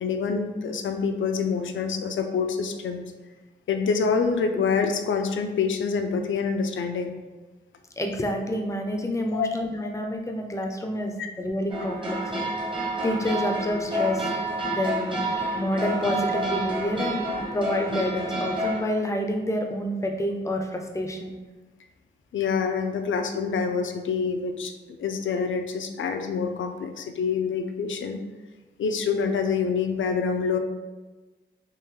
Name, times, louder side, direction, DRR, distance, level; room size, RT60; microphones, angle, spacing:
voice 1, 0.0-3.1 3.7-7.1 9.3-9.5 22.3-28.2 28.8-30.6, left 5 dB, 85° left, 6 dB, 0.4 m, -26 dB
voice 2, 8.0-12.3 12.7-14.3 14.7-15.2 15.5-17.3 17.5-21.3, left 1 dB, 15° left, 3 dB, 0.4 m, -28 dB
sound 1, 11.7-18.8, right 1 dB, 25° right, 0.9 m, -29 dB
3.7 x 3.0 x 3.0 m, 1.2 s
wide cardioid pair, 125°, 20 cm